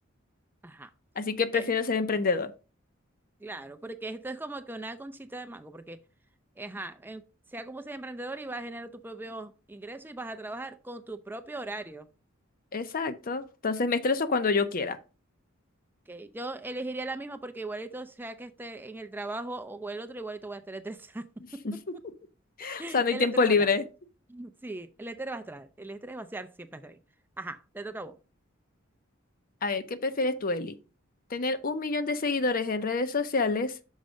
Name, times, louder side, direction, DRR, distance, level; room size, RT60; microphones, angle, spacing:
voice 1, 1.2-2.5 12.7-15.0 21.6-21.7 22.6-23.8 29.6-30.7 31.3-33.7, left 4 dB, 45° left, 0.6 m, -27 dB
voice 2, 3.4-6.0 6.6-7.2 7.5-12.1 16.1-21.3 21.7-21.8 22.8-23.7 24.3-27.0 27.4-28.2, right 2 dB, 10° right, 0.4 m, -39 dB
6.4 x 4.6 x 5.1 m
head